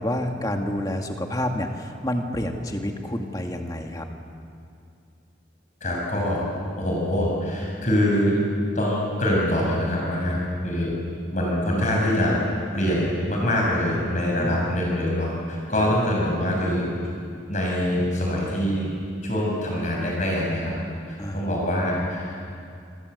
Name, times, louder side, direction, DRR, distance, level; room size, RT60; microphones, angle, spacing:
voice 1, 0.0-4.1 14.4-14.7 15.8-15.9 21.2-21.5, left 1 dB, 20° left, 3 dB, 2.0 m, -29 dB
voice 2, 5.8-6.4 6.8-8.4 8.7-10.9 11.3-12.3 12.7-16.8 17.5-18.9 19.2-20.7 21.1-22.5, left 1 dB, 40° left, -2 dB, 6.3 m, -24 dB
27.5 x 25.0 x 8.1 m, 2.4 s
head